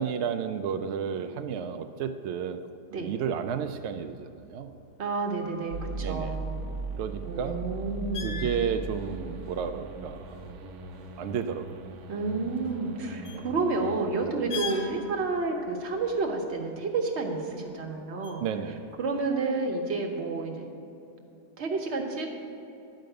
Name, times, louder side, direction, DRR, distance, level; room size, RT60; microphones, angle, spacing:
voice 1, 0.0-2.6 3.0-4.7 6.0-6.4 6.9-7.6 8.2-10.5 11.2-11.7 13.3-13.5 18.4-18.8, right 7 dB, 85° right, 8 dB, 0.6 m, -32 dB
sound 1, 2.9-19.2, left 6 dB, 50° left, 0.5 m, -47 dB
voice 2, 5.0-6.5 7.3-8.6 12.1-18.4 19.0-20.7 21.6-22.3, right 3 dB, 45° right, 2 dB, 1.2 m, -30 dB
sound 2, 5.7-14.0, right 3 dB, 70° right, 1.2 m, -38 dB
10.0 x 5.2 x 7.8 m, 2.8 s
omnidirectional pair, 1.7 m